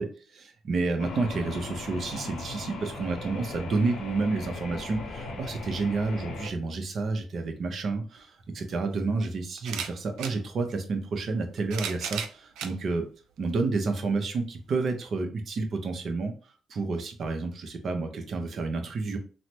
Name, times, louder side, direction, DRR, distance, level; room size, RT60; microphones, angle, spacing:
voice 1, 0.0-13.0 13.4-16.3 16.7-19.2, right 3 dB, 55° right, 5 dB, 0.6 m, -30 dB
sound 1, 1.0-6.5, left 3 dB, 75° left, 0.6 m, -39 dB
sound 2, 8.2-8.3 9.6-10.4 11.4-12.8 13.5-13.6 14.9-15.0, right 8 dB, 90° right, 0.3 m, -35 dB
3.1 x 2.0 x 2.8 m, 0.38 s
cardioid pair, 90°, 0 cm